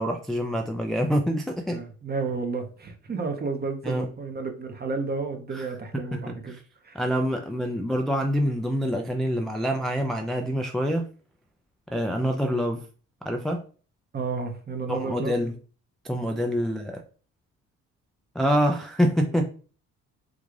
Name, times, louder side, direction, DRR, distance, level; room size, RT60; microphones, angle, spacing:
voice 1, 0.0-1.8 3.8-4.1 5.5-5.6 5.9-6.6 7.0-11.1 11.9-12.9 13.2-13.6 14.9-15.5 16.0-17.0 18.4-19.5, equal, ahead, 2 dB, 0.3 m, -26 dB
voice 2, 1.7-6.6 6.8-7.0 14.1-15.4 16.6-16.7 19.3-19.5, right 4 dB, 30° right, 5 dB, 0.8 m, -32 dB
3.7 x 2.3 x 3.2 m, 0.40 s
cardioid pair, 90°, 30 cm